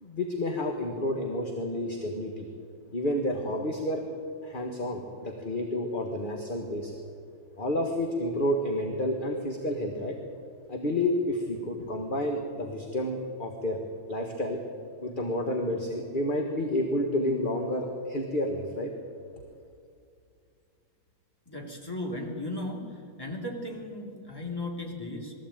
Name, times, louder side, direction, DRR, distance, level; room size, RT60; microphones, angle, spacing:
voice 1, 0.0-2.5 2.9-4.0 4.4-7.0 7.6-10.2 10.7-13.8 14.1-14.6 15.0-18.9, left 1 dB, 25° left, 2 dB, 1.6 m, -30 dB
voice 2, 21.5-25.3, left 1 dB, 10° left, -1 dB, 3.0 m, -36 dB
21.5 x 14.5 x 9.0 m, 2.3 s
omnidirectional pair, 2.2 m